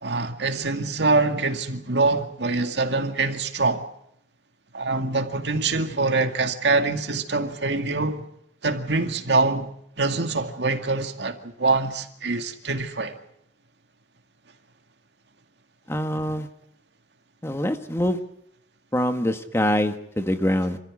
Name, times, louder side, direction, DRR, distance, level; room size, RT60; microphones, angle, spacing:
voice 1, 0.0-3.9 4.7-8.3 8.6-9.7 10.0-13.2, right 3 dB, 70° right, 2.2 m, -24 dB
voice 2, 15.9-16.5 17.4-18.2 18.9-20.8, left 1 dB, 15° left, 1.5 m, -24 dB
27.5 x 15.0 x 8.7 m
head